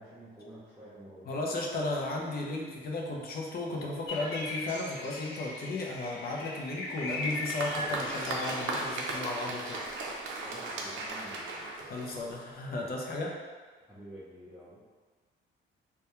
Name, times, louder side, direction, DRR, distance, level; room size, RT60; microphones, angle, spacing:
voice 1, 0.0-1.3 10.4-11.7 13.9-14.8, equal, 5° right, -12 dB, 0.7 m, -49 dB
voice 2, 1.3-9.8 11.9-13.3, left 2 dB, 50° left, -1 dB, 0.5 m, -35 dB
sound 1, 4.1-9.2, left 2 dB, 65° left, 0.9 m, -39 dB
Applause, 7.0-12.5, right 2 dB, 75° right, 0.4 m, -37 dB
2.2 x 2.2 x 2.9 m, 1.4 s
cardioid pair, 90°, 20 cm